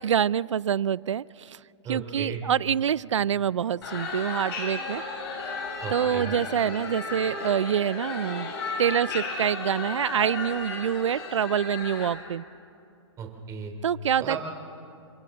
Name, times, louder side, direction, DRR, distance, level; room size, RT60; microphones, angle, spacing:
voice 1, 0.0-1.6 1.9-5.0 5.9-8.5 8.8-12.4 13.8-14.4, right 9 dB, 85° right, 22 dB, 0.4 m, -26 dB
voice 2, 1.8-2.4 5.8-6.3 13.2-13.7 14.2-14.4, right 7 dB, 20° right, 3 dB, 2.9 m, -35 dB
sound 1, 3.8-12.1, left 3 dB, 55° left, 7.3 m, -34 dB
30.0 x 25.0 x 3.9 m, 2.5 s
hypercardioid pair, 130°, 15 cm